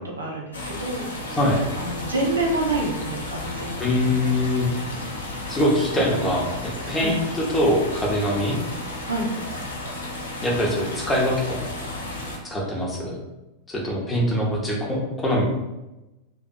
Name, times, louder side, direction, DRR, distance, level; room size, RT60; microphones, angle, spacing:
voice 1, 0.2-1.1 1.8-3.8 7.0-7.1 9.0-9.3, right 2 dB, 75° right, -2 dB, 0.5 m, -27 dB
sound 1, 0.5-12.4, left 2 dB, 70° left, 0.5 m, -33 dB
voice 2, 3.8-4.7 5.5-8.6 10.4-11.6 12.5-13.2 13.7-15.4, left 1 dB, 15° left, -2 dB, 0.7 m, -23 dB
2.6 x 2.4 x 2.3 m, 1.0 s
figure-of-eight pair, 90°, 0 cm